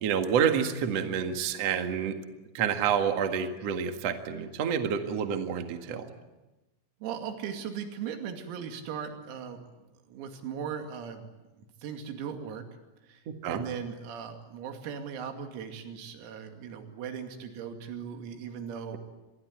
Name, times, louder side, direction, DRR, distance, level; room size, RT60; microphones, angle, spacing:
voice 1, 0.0-2.2 2.5-6.1 13.3-13.6, right 7 dB, 60° right, 6 dB, 1.7 m, -28 dB
voice 2, 7.0-9.6 10.1-11.3 11.6-12.7 13.0-19.0, right 7 dB, 90° right, 5 dB, 5.2 m, -38 dB
26.0 x 21.5 x 9.5 m, 1.1 s
omnidirectional pair, 6.0 m